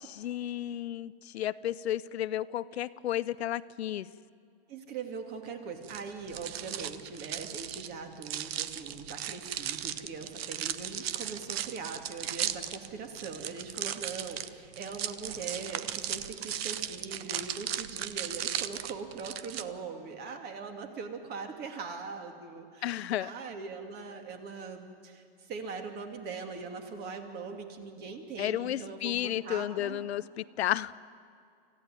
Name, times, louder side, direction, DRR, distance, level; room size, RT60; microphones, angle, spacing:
voice 1, 0.1-4.1 22.8-23.3 28.4-30.9, left 12 dB, 80° left, 16 dB, 0.7 m, -32 dB
voice 2, 4.7-30.0, right 5 dB, 30° right, 5 dB, 2.6 m, -41 dB
sound 1, 5.8-19.6, right 10 dB, 70° right, 1.1 m, -36 dB
26.0 x 15.0 x 9.6 m, 2.3 s
hypercardioid pair, 135°, 32 cm